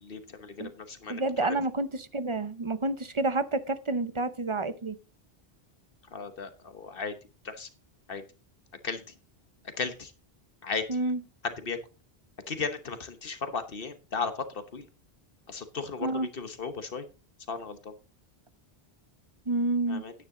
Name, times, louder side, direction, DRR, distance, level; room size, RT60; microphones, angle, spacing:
voice 1, 0.0-1.6 6.1-7.2 7.4-7.7 8.1-8.2 8.8-9.1 9.8-10.1 10.6-10.8 11.6-11.8 12.5-14.9 15.5-17.0 17.5-17.9 19.9-20.1, left 5 dB, 60° left, 9 dB, 1.3 m, -35 dB
voice 2, 1.1-5.0 10.9-11.2 16.0-16.3 19.5-20.0, right 2 dB, 35° right, 13 dB, 0.7 m, -29 dB
9.8 x 9.4 x 3.7 m, 0.32 s
omnidirectional pair, 1.1 m